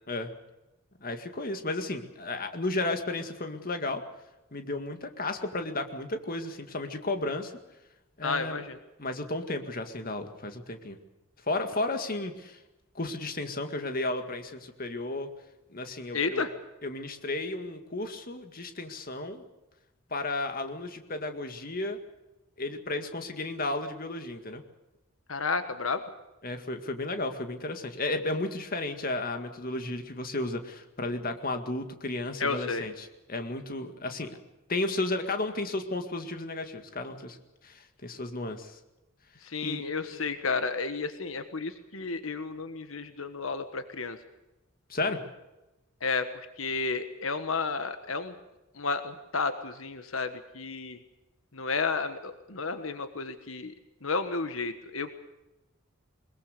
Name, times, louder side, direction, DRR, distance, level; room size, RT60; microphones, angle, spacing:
voice 1, 1.0-4.0 4.5-7.5 8.2-8.6 9.0-11.0 11.5-12.6 12.9-15.3 15.7-16.5 16.8-19.4 20.1-22.0 22.6-24.6 26.4-34.4 34.7-37.4 37.6-38.8 39.6-39.8 44.9-45.2, left 2 dB, 45° left, 7 dB, 2.1 m, -33 dB
voice 2, 8.2-8.8 16.1-16.5 25.3-26.0 32.4-32.9 39.4-44.2 46.0-46.3 46.6-48.3 48.8-51.0 51.5-53.7 54.0-55.2, left 4 dB, 85° left, 9 dB, 1.4 m, -32 dB
21.5 x 21.5 x 6.7 m, 0.99 s
head